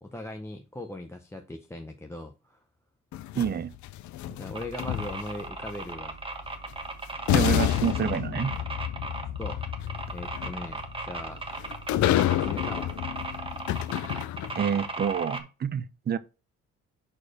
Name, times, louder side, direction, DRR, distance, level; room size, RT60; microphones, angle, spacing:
voice 1, 0.0-2.6 4.3-6.2 9.4-9.6 10.1-11.4 12.2-13.0, left 1 dB, 10° left, 0.6 m, -39 dB
sound 1, 3.1-5.5 6.7-6.8 7.3-14.8, left 13 dB, 70° left, 0.5 m, -29 dB
voice 2, 3.3-3.7 7.3-8.5 14.6-16.2, right 8 dB, 35° right, 0.5 m, -28 dB
sound 2, 4.5-13.5, right 7 dB, 85° left, 1.4 m, -50 dB
sound 3, 4.6-15.4, right 2 dB, 15° right, 1.2 m, -37 dB
4.8 x 4.3 x 4.9 m
cardioid pair, 90°, 30 cm